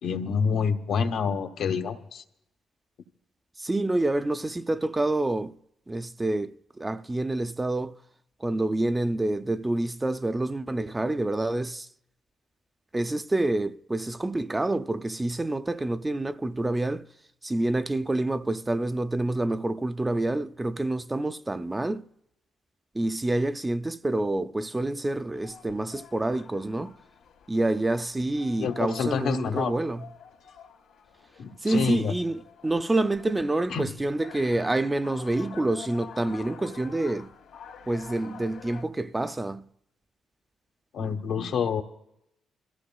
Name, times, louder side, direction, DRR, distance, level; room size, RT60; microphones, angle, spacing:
voice 1, 0.0-2.2 28.6-29.7 31.4-32.1 33.7-33.9 40.9-41.8, left 6 dB, 70° left, 1.1 m, -27 dB
voice 2, 3.6-5.5 5.9-7.9 8.4-11.9 12.9-17.1 17.4-22.0 22.9-26.9 27.5-30.0 31.6-37.3 37.9-39.6, right 2 dB, 15° right, 0.4 m, -27 dB
sound 1, 25.3-38.8, left 7 dB, 85° left, 2.3 m, -48 dB
27.5 x 14.5 x 2.3 m
cardioid pair, 90°, 0 cm